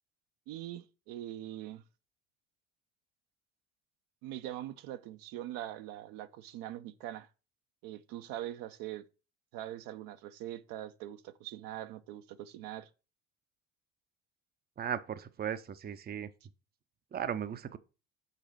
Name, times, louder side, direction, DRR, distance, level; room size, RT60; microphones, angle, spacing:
voice 1, 0.5-1.8 4.2-7.3 7.8-9.0 9.5-12.9, right 13 dB, 65° right, 0.7 m, -42 dB
voice 2, 14.8-16.3 17.1-17.8, right 8 dB, 25° right, 0.6 m, -36 dB
6.7 x 4.9 x 4.6 m
hypercardioid pair, 55°, 37 cm